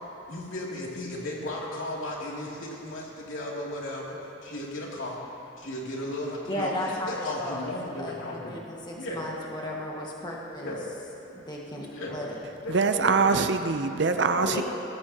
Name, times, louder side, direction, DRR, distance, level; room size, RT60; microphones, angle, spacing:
voice 1, 0.3-4.2 4.4-5.2 5.6-8.6 8.9-9.3 10.6-10.9 11.9-12.2 12.6-13.2 14.1-14.6, left 1 dB, 80° left, -4 dB, 2.8 m, -35 dB
voice 2, 6.5-7.7 8.0-10.8 11.3-12.4 14.4-14.6, left 1 dB, 20° left, -3 dB, 1.7 m, -35 dB
voice 3, 12.7-14.6, right 4 dB, 60° right, 8 dB, 0.6 m, -23 dB
19.0 x 15.5 x 2.9 m, 2.9 s
head